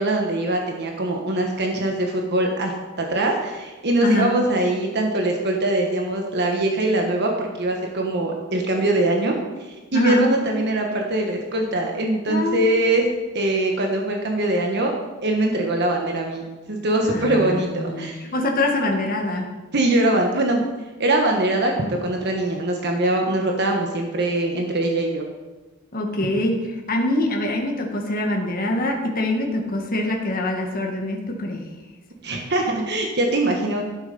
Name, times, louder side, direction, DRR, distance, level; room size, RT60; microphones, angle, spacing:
voice 1, 0.0-13.0 13.3-14.9 15.2-18.2 19.7-20.6 21.0-25.2 26.3-26.4 32.2-33.8, right 1 dB, 50° right, 1 dB, 1.4 m, -22 dB
voice 2, 4.0-4.3 9.9-10.3 12.3-12.7 17.0-19.5 25.9-31.7 32.4-32.5, left 1 dB, 40° left, 1 dB, 1.7 m, -24 dB
12.5 x 7.7 x 5.4 m, 1.2 s
head